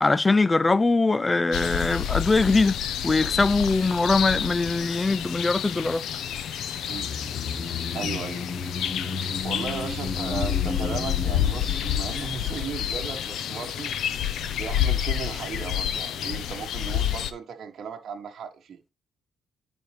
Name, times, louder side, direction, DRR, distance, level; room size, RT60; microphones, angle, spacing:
voice 1, 0.0-2.8 3.0-6.0, left 3 dB, 20° left, 0.3 m, -22 dB
sound 1, 1.5-17.3, left 10 dB, 75° left, 0.8 m, -29 dB
sound 2, 6.8-13.3 13.5-13.6, left 4 dB, 40° left, 1.5 m, -34 dB
voice 2, 7.9-8.5 9.4-13.9 14.5-18.8, right 6 dB, 55° right, 1.3 m, -36 dB
10.5 x 5.3 x 3.2 m
cardioid pair, 90°, 0 cm